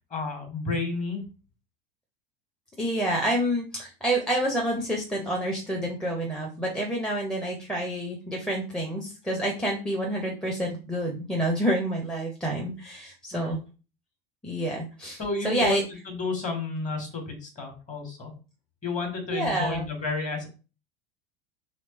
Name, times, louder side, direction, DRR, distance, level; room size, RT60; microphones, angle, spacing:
voice 1, 0.1-1.2 13.3-13.6 15.2-18.3 18.8-20.5, left 3 dB, 25° left, 4 dB, 1.5 m, -31 dB
voice 2, 2.8-13.6 14.4-15.8 19.3-19.9, right 1 dB, ahead, -1 dB, 0.7 m, -28 dB
3.2 x 3.0 x 3.0 m, 0.34 s
figure-of-eight pair, 80°, 30 cm